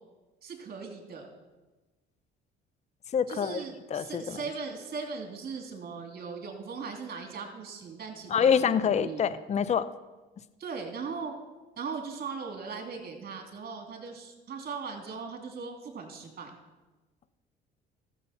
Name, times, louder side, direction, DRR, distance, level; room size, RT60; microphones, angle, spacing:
voice 1, 0.4-1.3 3.3-9.2 10.6-11.3 11.8-16.5, right 5 dB, 45° right, 3 dB, 2.7 m, -39 dB
voice 2, 3.1-3.6 3.9-4.4 8.3-9.9, left 7 dB, 35° left, 15 dB, 0.6 m, -26 dB
13.5 x 7.3 x 5.7 m, 1.2 s
supercardioid pair, 75°, 21 cm